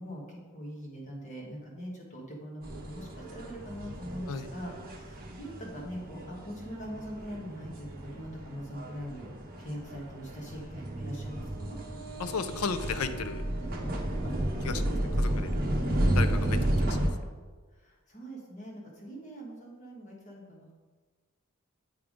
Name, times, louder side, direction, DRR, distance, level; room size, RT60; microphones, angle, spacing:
voice 1, 0.0-9.3 9.6-11.8 14.2-15.0 17.7-20.7, equal, 35° left, -3 dB, 1.4 m, -42 dB
sound 1, 2.6-17.1, right 1 dB, 40° right, 0.9 m, -32 dB
voice 2, 12.2-13.4 14.6-14.9 15.2-15.5 16.1-17.0, left 5 dB, 80° left, 10 dB, 0.5 m, -34 dB
8.0 x 3.5 x 5.0 m, 1.4 s
head